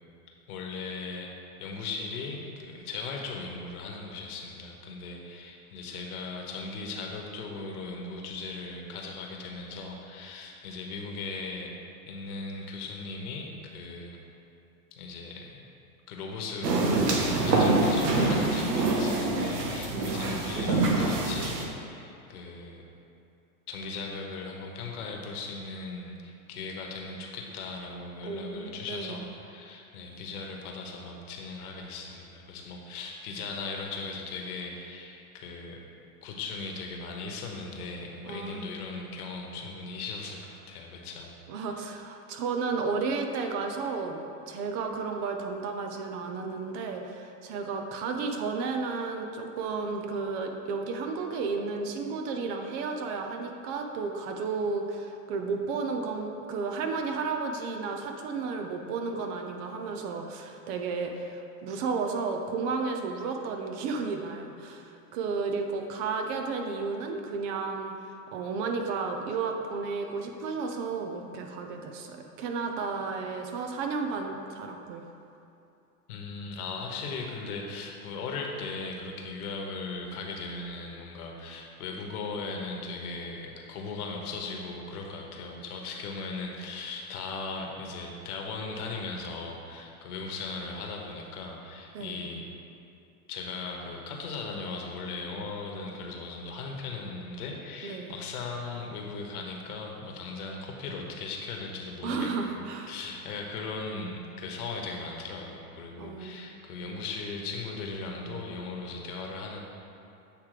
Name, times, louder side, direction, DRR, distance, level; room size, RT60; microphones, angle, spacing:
voice 1, 0.5-1.3 1.6-11.7 12.1-14.2 14.9-15.7 16.1-22.8 23.7-35.8 36.2-41.3 76.1-92.5 93.3-109.6, left 3 dB, 70° left, 1 dB, 1.2 m, -38 dB
sound 1, 16.6-21.7, right 2 dB, 85° right, 1.0 m, -25 dB
voice 2, 19.9-20.4 28.2-29.2 38.3-38.7 41.5-67.9 68.3-75.1 91.9-92.3 97.8-98.2 102.0-102.9 106.0-106.4, right 4 dB, 50° right, 4 dB, 0.8 m, -33 dB
7.9 x 3.3 x 4.9 m, 2.7 s
hypercardioid pair, 110°, 47 cm